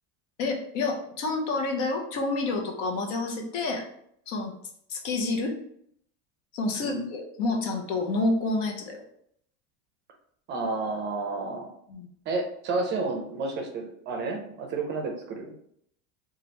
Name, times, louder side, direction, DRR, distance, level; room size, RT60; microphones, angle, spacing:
voice 1, 0.4-3.8 4.3-4.5 4.9-5.5 6.5-9.0 11.9-12.1, left 3 dB, 75° left, 2 dB, 0.8 m, -28 dB
voice 2, 10.5-11.7 12.3-15.5, right 3 dB, 35° right, 3 dB, 0.5 m, -31 dB
2.9 x 2.4 x 3.1 m, 0.68 s
cardioid pair, 160°, 34 cm